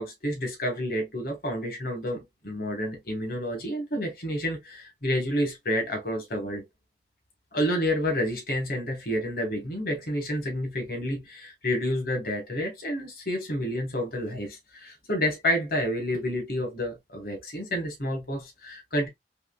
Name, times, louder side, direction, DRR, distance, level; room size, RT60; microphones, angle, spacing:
voice 1, 0.0-6.6 7.5-19.1, equal, 55° left, 1.2 m, -29 dB
3.5 x 2.8 x 2.2 m
head